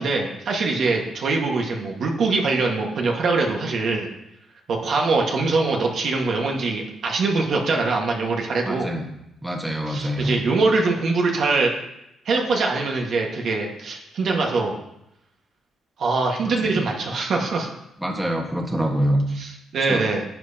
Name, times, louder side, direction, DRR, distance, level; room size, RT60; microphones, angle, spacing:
voice 1, 0.0-4.1 4.7-8.9 9.9-11.7 12.2-14.7 16.0-17.7 19.4-20.2, right 3 dB, 60° right, 0 dB, 1.6 m, -23 dB
voice 2, 8.6-9.0 9.4-10.4 16.4-16.8 18.0-19.3 19.9-20.0, equal, 5° right, 1 dB, 1.4 m, -25 dB
10.5 x 8.6 x 2.9 m, 0.84 s
cardioid pair, 90°, 0 cm